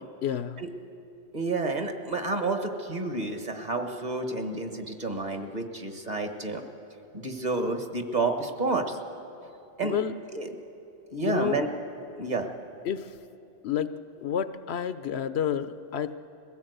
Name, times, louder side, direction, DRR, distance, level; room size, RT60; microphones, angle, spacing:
voice 1, 0.2-0.6 9.8-10.1 11.2-11.6 12.9-13.1 13.6-13.9 14.2-16.1, left 8 dB, 70° left, 12 dB, 0.9 m, -29 dB
voice 2, 1.3-6.6 7.1-9.0 9.4-9.5 9.8-10.0 10.3-10.5 11.1-11.7 12.2-12.5, right 3 dB, 40° right, 5 dB, 1.5 m, -30 dB
22.0 x 16.5 x 8.0 m, 2.8 s
omnidirectional pair, 1.2 m